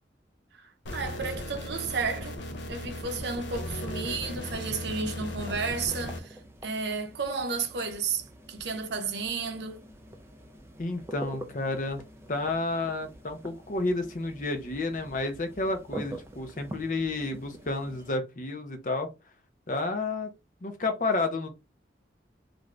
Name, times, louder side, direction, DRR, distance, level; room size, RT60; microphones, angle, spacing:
sound 1, 0.9-6.2, left 1 dB, 90° left, 0.6 m, -37 dB
voice 1, 0.9-2.4 2.7-6.4 6.6-9.8, right 4 dB, 70° right, 0.6 m, -32 dB
sound 2, 4.1-18.1, right 1 dB, 15° right, 0.4 m, -46 dB
voice 2, 10.8-12.0 12.3-19.1 19.7-20.3 20.6-21.5, left 2 dB, 45° left, 0.6 m, -31 dB
2.6 x 2.4 x 3.1 m
head